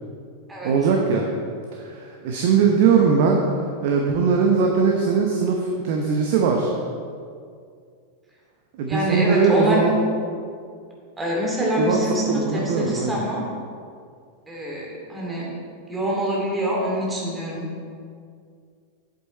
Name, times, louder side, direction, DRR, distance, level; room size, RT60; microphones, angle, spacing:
voice 1, 0.6-1.3 1.7-3.4 3.8-6.7 8.8-9.9 11.8-12.0 12.5-13.2, right 5 dB, 50° right, 1 dB, 0.9 m, -20 dB
voice 2, 8.9-9.9 11.2-13.4 14.5-15.5 15.9-17.7, equal, 10° right, -3 dB, 2.5 m, -25 dB
8.1 x 8.0 x 4.3 m, 2.2 s
figure-of-eight pair, 90°, 0 cm